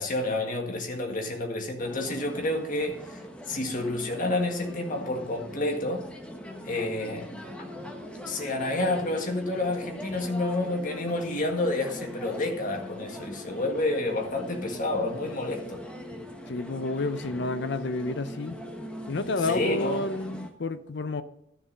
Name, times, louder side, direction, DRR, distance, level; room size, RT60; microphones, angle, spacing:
voice 1, 0.0-3.2 3.5-6.0 6.6-7.3 8.3-15.8 19.5-20.0, left 2 dB, 45° left, 1.8 m, -29 dB
sound 1, 1.8-20.5, equal, 5° left, 1.1 m, -42 dB
sound 2, 7.4-20.1, left 4 dB, 80° right, 1.5 m, -47 dB
voice 2, 16.5-18.6 19.1-21.2, left 2 dB, 60° left, 0.6 m, -30 dB
12.5 x 6.8 x 5.3 m
head